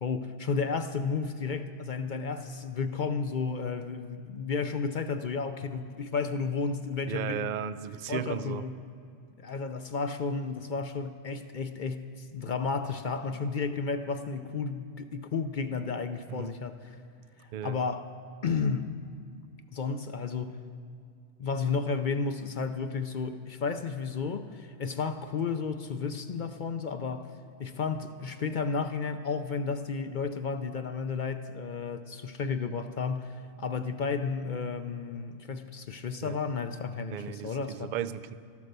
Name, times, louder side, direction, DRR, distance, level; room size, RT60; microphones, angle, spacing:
voice 1, 0.0-7.6 8.1-8.8 9.4-17.0 17.4-18.1 18.4-19.0 19.7-20.6 21.4-27.3 27.6-37.9, left 5 dB, 50° left, 9 dB, 0.6 m, -32 dB
voice 2, 7.1-8.6 16.3-16.6 17.5-17.8 36.2-36.4 37.1-38.3, right 9 dB, 65° right, 15 dB, 0.4 m, -35 dB
13.5 x 12.0 x 6.7 m, 2.4 s
omnidirectional pair, 1.3 m